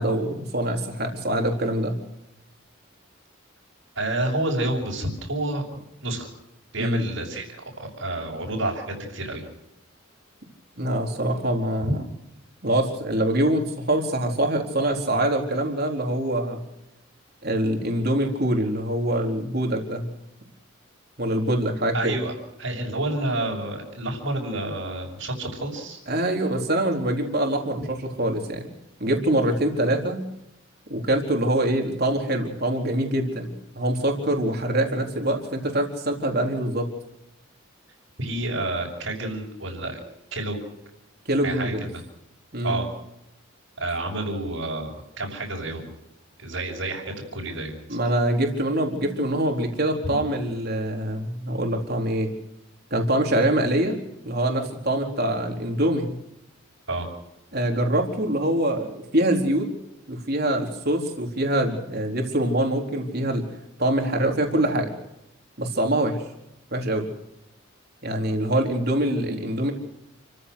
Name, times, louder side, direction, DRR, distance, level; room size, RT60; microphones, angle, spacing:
voice 1, 0.0-2.0 6.8-7.1 10.8-12.0 12.6-16.6 17.4-20.1 21.2-22.2 26.1-28.6 29.0-30.2 30.9-36.9 41.3-41.9 42.5-42.8 47.9-52.3 52.9-54.0 54.2-56.2 57.5-59.7 60.1-63.4 63.8-64.9 65.6-66.2 66.7-67.1 68.0-69.7, right 1 dB, 50° right, 2 dB, 4.3 m, -24 dB
voice 2, 4.0-5.6 6.0-6.3 6.7-9.5 21.9-22.3 22.6-26.0 38.2-40.0 40.3-40.6 41.4-42.0 42.6-42.9 43.8-44.9 45.2-45.9 46.4-48.0 56.9-57.1, right 2 dB, 70° right, -4 dB, 6.2 m, -29 dB
29.5 x 15.0 x 6.6 m, 0.85 s
head